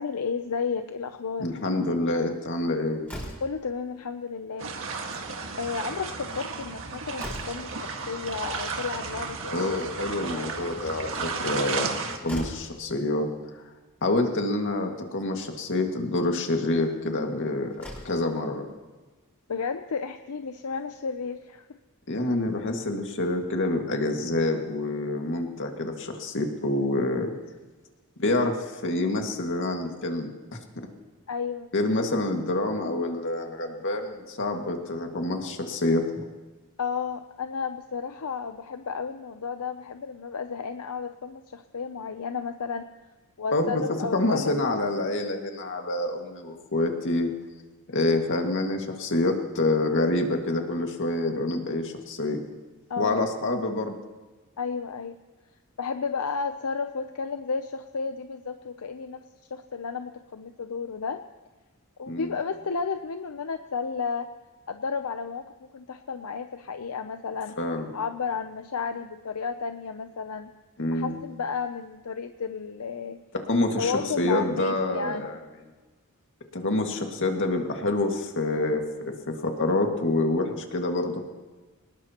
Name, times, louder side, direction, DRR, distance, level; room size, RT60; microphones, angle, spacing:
voice 1, 0.0-1.5 3.4-4.7 5.6-9.7 10.3-10.7 19.5-21.6 31.3-31.7 36.8-42.9 43.4-44.6 47.9-48.2 52.9-53.2 54.6-55.1 55.8-59.2 59.5-61.2 62.0-64.3 64.7-65.5 65.7-67.6 67.9-70.5 70.9-73.2 73.8-75.4, left 5 dB, 80° left, 8 dB, 0.6 m, -32 dB
voice 2, 1.4-3.0 9.5-11.1 11.4-11.9 12.2-13.3 14.0-18.6 22.1-27.3 28.2-30.6 31.7-36.2 43.5-43.8 44.1-47.3 47.9-52.4 53.0-53.9 62.1-62.4 67.6-67.9 70.8-71.2 73.3-75.4 76.5-81.2, left 2 dB, 60° left, 3 dB, 2.0 m, -27 dB
Slam, 3.0-3.7 4.9-5.3 5.6-5.7 6.0-6.1 6.6-7.8 9.5-10.2 11.8-11.9 12.2-12.8 13.9-14.0 14.4-14.5 15.3-15.5 17.2-17.3 17.7-18.3, equal, 10° left, 5.6 m, -40 dB
sound 1, 4.6-12.2, right 4 dB, 65° right, 1.8 m, -33 dB
24.0 x 20.0 x 3.0 m, 1.3 s
head